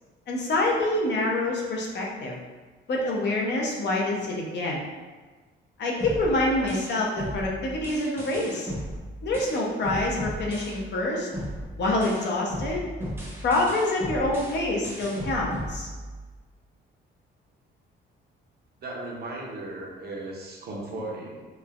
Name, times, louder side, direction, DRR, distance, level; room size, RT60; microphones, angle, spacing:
voice 1, 0.3-2.3 2.9-4.8 5.8-8.7 9.2-11.3 11.8-12.8 13.4-15.9, left 2 dB, 60° left, -2 dB, 0.7 m, -26 dB
sound 1, 6.0-11.0 11.3-16.4, equal, 10° right, 0.7 m, -36 dB
voice 2, 18.8-21.5, right 2 dB, 50° right, -2 dB, 0.7 m, -36 dB
3.1 x 2.1 x 2.4 m, 1.3 s
cardioid pair, 90°, 20 cm